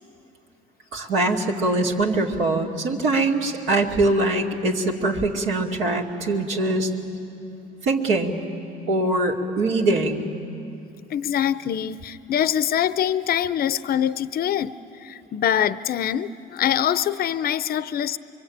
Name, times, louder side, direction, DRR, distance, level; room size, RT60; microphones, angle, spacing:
voice 1, 0.9-6.9 7.8-8.4 8.9-10.3, right 2 dB, 75° right, -1 dB, 2.6 m, -22 dB
voice 2, 11.1-18.2, left 10 dB, 50° left, 15 dB, 0.7 m, -24 dB
24.5 x 23.0 x 8.9 m, 2.8 s
supercardioid pair, 85°, 21 cm